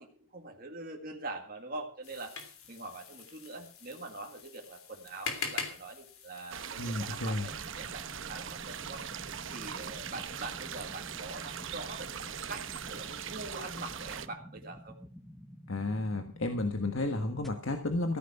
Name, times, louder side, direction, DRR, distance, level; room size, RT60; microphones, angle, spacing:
voice 1, 0.0-2.3 2.7-9.0 9.5-15.0, right 2 dB, 40° right, 1 dB, 1.9 m, -44 dB
sound 1, 2.0-7.2, left 5 dB, 85° left, 3.0 m, -42 dB
sound 2, 6.5-14.3, right 8 dB, 65° right, 0.9 m, -41 dB
voice 2, 6.8-7.4 15.7-18.2, left 2 dB, 70° left, 5 dB, 1.4 m, -32 dB
sound 3, 7.5-17.5, equal, ahead, 1.1 m, -51 dB
14.5 x 9.7 x 5.9 m, 0.43 s
head